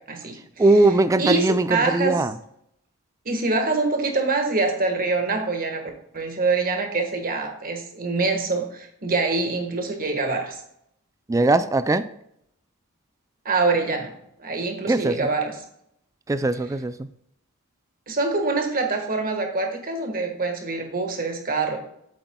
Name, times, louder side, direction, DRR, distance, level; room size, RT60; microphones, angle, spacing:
voice 1, 0.6-2.3 11.3-12.0 14.9-15.3 16.3-17.1, right 2 dB, 15° right, 12 dB, 0.3 m, -20 dB
voice 2, 1.2-2.2 3.2-10.5 13.4-14.1 14.4-15.6 18.1-21.8, right 3 dB, 40° right, 4 dB, 1.5 m, -25 dB
8.1 x 7.8 x 2.3 m, 0.74 s
head